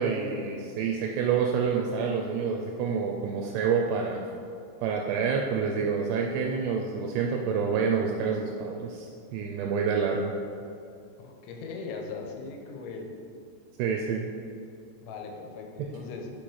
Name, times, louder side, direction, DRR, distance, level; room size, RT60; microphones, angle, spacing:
voice 1, 0.0-4.3 4.8-10.3 13.8-14.3 15.8-15.9, right 6 dB, 85° right, 0 dB, 2.4 m, -28 dB
voice 2, 11.2-13.1 15.0-16.3, left 4 dB, 90° left, 2 dB, 3.0 m, -39 dB
7.1 x 4.7 x 4.6 m, 2.4 s
omnidirectional pair, 5.3 m